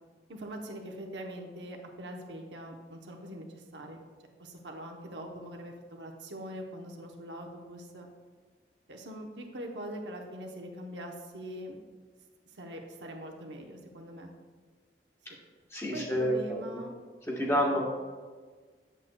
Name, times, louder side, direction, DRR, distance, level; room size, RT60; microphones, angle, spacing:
voice 1, 0.3-4.0 4.4-8.1 8.9-11.8 12.5-14.3 15.9-16.9 17.4-17.8, equal, 80° right, 2 dB, 0.9 m, -42 dB
voice 2, 15.7-16.4 17.4-17.8, equal, 15° left, -3 dB, 1.1 m, -28 dB
8.2 x 7.5 x 2.3 m, 1.5 s
head